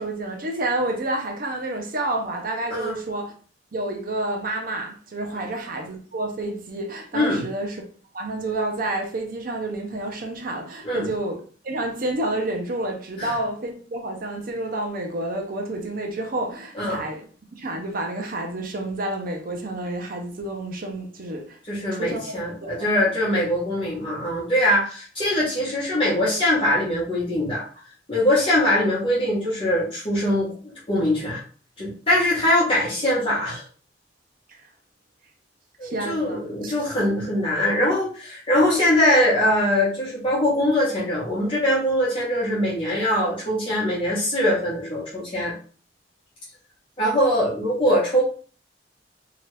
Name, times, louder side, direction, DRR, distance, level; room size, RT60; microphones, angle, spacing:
voice 1, 0.0-3.3 3.7-7.8 8.1-17.2 17.6-21.6 21.9-22.2 22.6-22.9 34.5-34.6 35.8-36.8, right 2 dB, 55° right, 0.6 m, -29 dB
voice 2, 21.7-27.7 28.1-31.4 31.8-33.6 35.8-45.5 47.0-48.2, left 1 dB, 30° left, 0.9 m, -22 dB
2.8 x 2.4 x 3.1 m
head